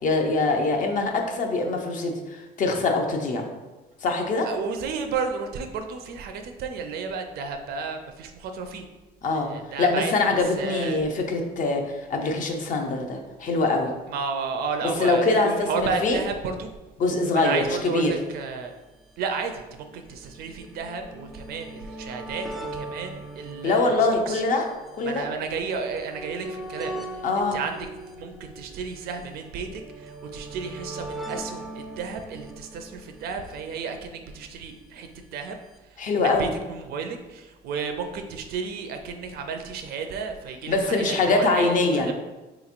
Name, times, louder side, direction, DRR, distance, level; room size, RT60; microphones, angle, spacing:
voice 1, 0.0-3.5 4.0-4.5 9.2-9.5 9.8-13.9 14.8-16.2 17.0-18.2 23.6-24.7 24.9-25.3 27.2-27.6 36.0-36.5 40.7-42.1, left 3 dB, 50° left, 3 dB, 0.5 m, -23 dB
voice 2, 4.5-8.8 9.3-10.1 10.6-11.0 14.1-16.7 17.3-18.7 19.2-24.0 24.3-24.4 25.1-26.9 27.5-27.8 28.1-35.6 36.2-42.1, right 5 dB, 65° right, 6 dB, 0.4 m, -32 dB
sound 1, 18.3-18.4 19.3-34.5 35.5-35.6 35.8-35.9, right 2 dB, ahead, 0.3 m, -40 dB
3.5 x 2.9 x 2.5 m, 1.1 s
cardioid pair, 110°, 17 cm